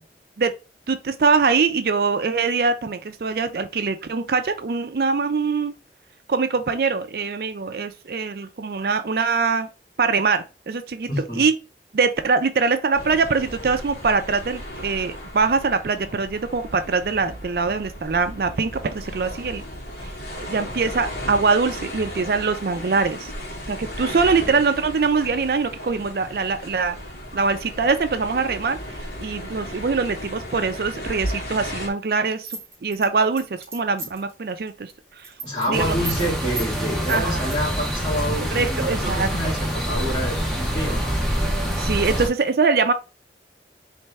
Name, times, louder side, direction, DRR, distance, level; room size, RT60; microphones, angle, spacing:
voice 1, 0.9-5.7 6.3-9.7 10.0-11.5 11.9-19.6 20.0-20.1 20.4-23.3 23.7-27.0 27.3-28.8 29.2-35.3 35.7-36.0 37.1-37.5 38.4-39.3 41.7-42.9, right 4 dB, 60° right, 0.4 m, -23 dB
voice 2, 11.1-11.4 24.4-24.5 35.4-41.4, equal, 25° left, 2.8 m, -28 dB
sound 1, 12.9-31.9, equal, 75° left, 1.8 m, -35 dB
sound 2, 32.4-34.3 34.7-34.9 35.2-35.7 36.0-36.3 36.6-36.7 37.0-37.6, right 3 dB, 15° right, 1.7 m, -33 dB
sound 3, 35.7-42.3, equal, ahead, 1.0 m, -25 dB
4.2 x 3.2 x 3.4 m
head